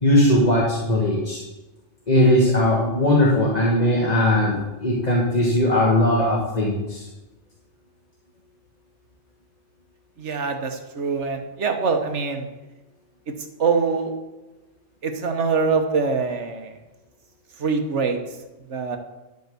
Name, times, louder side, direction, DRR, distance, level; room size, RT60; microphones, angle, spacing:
voice 1, 0.0-1.4 2.1-7.1, left 1 dB, 35° left, -4 dB, 1.7 m, -19 dB
voice 2, 10.2-12.5 13.6-14.1 15.0-16.7 17.6-18.2 18.7-19.0, right 4 dB, 65° right, 5 dB, 1.5 m, -24 dB
12.0 x 5.4 x 6.8 m, 1.1 s
omnidirectional pair, 1.3 m